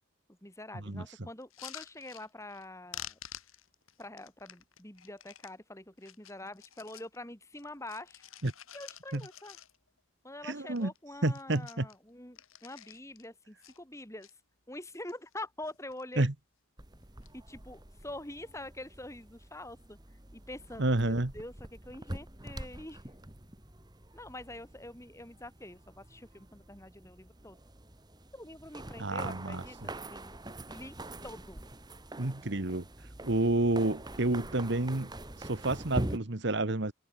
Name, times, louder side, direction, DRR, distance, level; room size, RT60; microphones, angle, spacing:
voice 1, 0.3-3.2 4.0-8.2 8.7-9.6 10.2-14.3 14.7-16.3 17.3-20.0 20.3-23.1 24.1-27.6 28.3-30.3 30.7-31.0 31.2-31.6, left 1 dB, 15° left, 5.4 m, -45 dB
sound 1, 1.4-2.7 2.9-5.5 6.0-7.2 7.5-10.0 10.3-10.4 10.7-11.0 11.2-13.3 13.6-14.3 14.9-15.4 15.6-16.2 17.0-17.3, left 11 dB, 80° left, 7.0 m, -49 dB
voice 2, 10.4-10.9 11.2-11.9 16.2-16.3 20.8-21.3 29.0-29.6 32.2-32.8 33.2-35.1 35.4-36.9, right 2 dB, 55° right, 1.4 m, -29 dB
sound 2, 16.8-36.2, right 1 dB, 20° right, 1.9 m, -44 dB
head